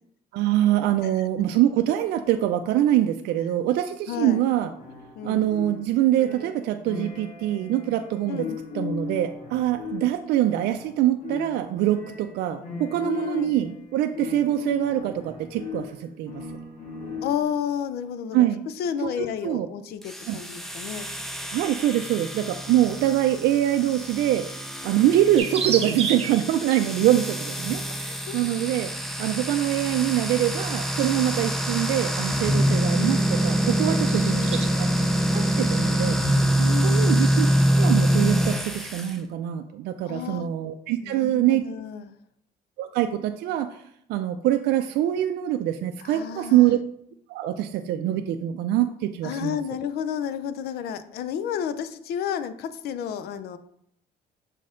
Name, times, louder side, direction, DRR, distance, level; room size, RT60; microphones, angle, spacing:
voice 1, 0.3-4.7 5.2-8.5 8.7-16.4 18.3-18.6 19.2-19.7 20.3-20.4 21.5-28.9 29.2-34.9 35.3-36.4 36.8-37.5 37.7-41.6 42.8-43.8 44.1-46.8 47.3-49.6, right 12 dB, 75° right, 6 dB, 0.4 m, -24 dB
voice 2, 4.1-4.5 5.2-5.5 8.3-8.6 13.0-13.5 17.2-18.5 18.8-21.0 28.1-28.4 34.1-34.7 36.6-37.2 40.0-40.5 41.0-42.1 46.0-46.7 49.2-53.6, left 8 dB, 70° left, 12 dB, 0.5 m, -31 dB
sound 1, 4.1-17.6, left 5 dB, 45° left, 1.4 m, -37 dB
sound 2, 20.0-39.1, equal, ahead, 0.6 m, -25 dB
sound 3, 25.4-26.5 27.9-28.2 29.7-30.2 30.8-31.1 31.7-31.8 32.5-32.6 32.9-33.1 33.4-34.7, right 6 dB, 35° right, 0.9 m, -30 dB
6.5 x 4.1 x 3.8 m, 0.73 s
cardioid pair, 110°, 17 cm